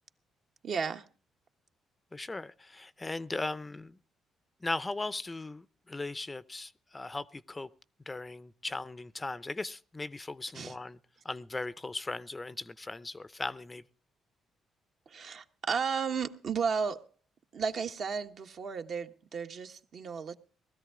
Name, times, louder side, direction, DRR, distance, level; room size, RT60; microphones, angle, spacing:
voice 1, 0.6-1.0 10.5-10.7 15.1-17.1 17.5-20.3, right 6 dB, 60° right, 1.2 m, -33 dB
voice 2, 2.1-4.0 4.6-7.7 8.1-11.0 11.2-13.8, left 2 dB, 20° left, 0.6 m, -38 dB
19.0 x 13.5 x 3.7 m
cardioid pair, 90°, 0 cm